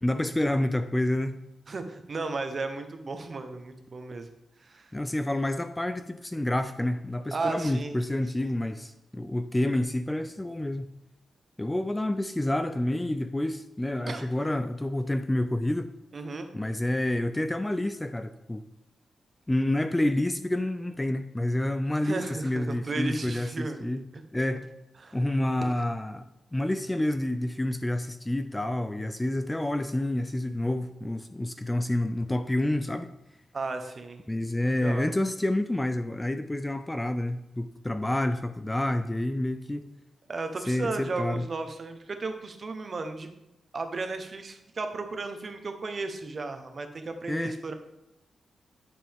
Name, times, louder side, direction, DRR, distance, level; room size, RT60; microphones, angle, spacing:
voice 1, 0.0-1.3 4.9-10.9 11.6-15.9 16.5-18.6 19.5-24.0 24.3-24.7 25.1-33.1 34.3-39.9 40.7-41.5 47.3-47.5, left 1 dB, 10° left, 10 dB, 0.4 m, -28 dB
voice 2, 1.7-4.3 4.6-4.9 7.3-8.0 8.4-8.5 14.1-14.2 16.1-16.5 22.0-23.8 25.0-25.2 33.5-34.2 34.6-35.1 40.3-43.3 43.7-47.7, right 3 dB, 40° right, 7 dB, 1.0 m, -34 dB
10.5 x 6.9 x 3.6 m, 0.90 s
wide cardioid pair, 125°, 0 cm